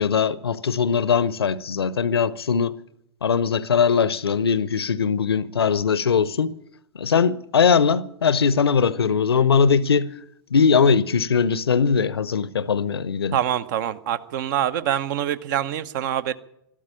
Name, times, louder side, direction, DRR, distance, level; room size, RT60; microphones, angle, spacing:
voice 1, 0.0-2.8 3.2-6.5 7.0-10.1 10.5-13.4, left 6 dB, 75° left, 0.7 m, -20 dB
voice 2, 13.3-16.3, right 10 dB, 50° right, 0.9 m, -25 dB
13.5 x 12.5 x 8.7 m
figure-of-eight pair, 100°, 13 cm